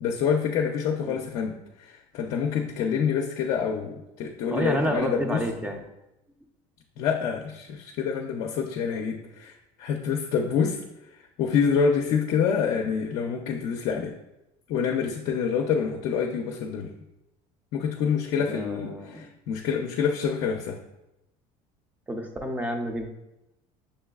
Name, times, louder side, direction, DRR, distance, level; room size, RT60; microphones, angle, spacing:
voice 1, 0.0-5.4 7.0-10.8 11.4-14.1 14.7-16.9 17.7-20.8, left 6 dB, 60° left, 1 dB, 0.5 m, -27 dB
voice 2, 4.5-5.8 18.3-19.3 22.1-23.1, equal, 10° right, 4 dB, 0.5 m, -29 dB
6.6 x 3.0 x 2.3 m, 0.91 s
cardioid pair, 140°, 14 cm